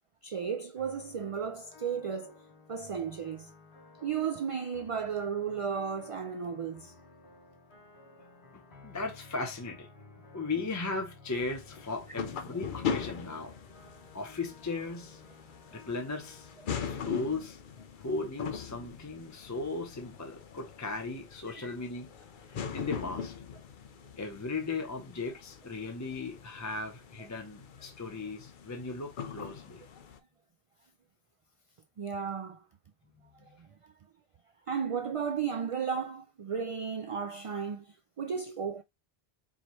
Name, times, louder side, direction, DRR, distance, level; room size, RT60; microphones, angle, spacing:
voice 1, 0.2-2.4 2.7-3.5 4.0-6.9 21.6-21.7 29.4-29.5 32.0-32.6 33.6-33.7 34.7-38.8, right 7 dB, 60° right, 0.3 m, -34 dB
sound 1, 0.8-16.7, left 3 dB, 75° left, 2.8 m, -55 dB
voice 2, 8.5-9.9 10.3-13.6 14.1-15.2 15.7-16.5 16.9-17.6 18.0-22.1 22.4-23.4 24.2-29.8 33.2-33.6, left 3 dB, 20° left, 0.5 m, -37 dB
sound 2, 11.3-30.2, left 7 dB, 55° left, 0.7 m, -41 dB
4.9 x 2.7 x 3.0 m
omnidirectional pair, 1.1 m